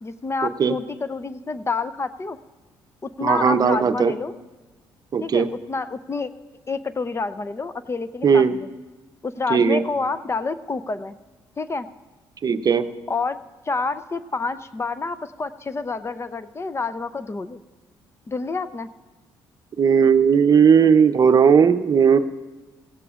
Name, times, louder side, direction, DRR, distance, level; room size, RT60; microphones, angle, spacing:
voice 1, 0.0-2.4 3.0-4.3 5.2-6.3 6.7-8.7 9.2-11.1 11.6-11.9 13.1-13.4 13.7-17.6 18.3-18.9, left 4 dB, 30° left, 13 dB, 0.6 m, -28 dB
voice 2, 3.2-4.1 5.1-5.5 8.2-8.5 9.5-9.8 12.4-12.8 19.8-22.2, right 6 dB, 45° right, 10 dB, 0.7 m, -16 dB
17.5 x 16.0 x 2.5 m, 1.2 s
supercardioid pair, 65°, 9 cm